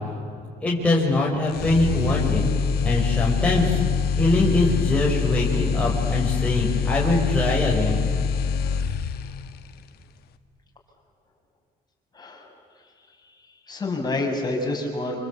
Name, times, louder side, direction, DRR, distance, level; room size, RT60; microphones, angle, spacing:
voice 1, 0.6-2.5 2.8-3.8 4.1-8.0, left 2 dB, 5° left, -4 dB, 5.4 m, -22 dB
sound 1, 1.5-9.5, left 6 dB, 70° left, 1.5 m, -25 dB
voice 2, 12.1-12.5 13.7-15.2, left 2 dB, 25° left, 1 dB, 6.2 m, -27 dB
26.0 x 26.0 x 8.5 m, 2.2 s
cardioid pair, 110°, 17 cm